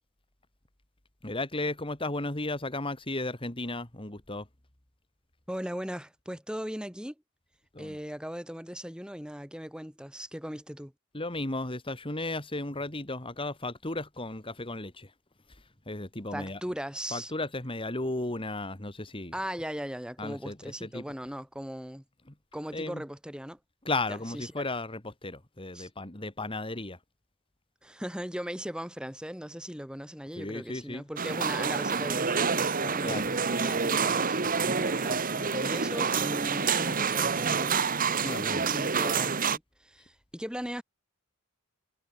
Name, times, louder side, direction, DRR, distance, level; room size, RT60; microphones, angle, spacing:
voice 1, 1.2-4.5 7.7-8.0 11.1-15.1 15.5-16.6 17.1-19.3 20.2-21.0 22.7-23.0 23.8-27.0 30.3-31.0 33.0-33.3 38.2-38.7, left 2 dB, 25° left, 2.4 m, -35 dB
voice 2, 5.5-7.2 7.8-10.9 16.3-17.3 19.3-22.0 22.5-23.6 24.3-24.7 25.7-25.9 27.8-38.4 38.7-40.8, equal, 5° right, 3.5 m, -38 dB
sound 1, 31.2-39.6, right 5 dB, 40° right, 1.4 m, -28 dB
head